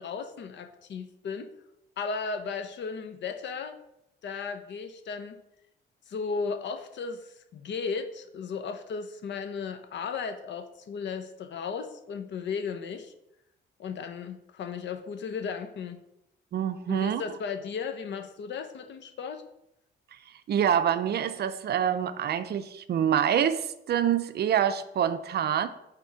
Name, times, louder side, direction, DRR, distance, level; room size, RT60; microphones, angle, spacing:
voice 1, 0.0-1.5 2.0-3.8 4.2-5.4 6.1-13.1 13.8-16.0 16.9-19.4, left 5 dB, 65° left, 8 dB, 0.8 m, -35 dB
voice 2, 16.5-17.2 20.5-25.7, right 9 dB, 55° right, 12 dB, 0.5 m, -26 dB
5.8 x 3.6 x 5.7 m, 0.82 s
cardioid pair, 90°, 20 cm